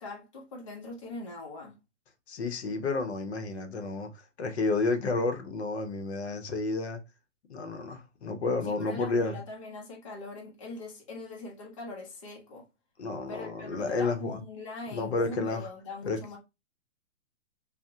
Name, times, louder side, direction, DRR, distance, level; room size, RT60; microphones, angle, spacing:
voice 1, 0.0-1.8 8.7-12.7 13.3-16.4, left 2 dB, 25° left, 0.5 m, -41 dB
voice 2, 2.3-4.1 4.4-7.0 7.5-9.4 13.0-14.4 14.9-15.7 16.0-16.2, left 3 dB, 60° left, 0.7 m, -31 dB
3.4 x 2.1 x 2.6 m
hypercardioid pair, 175°, 36 cm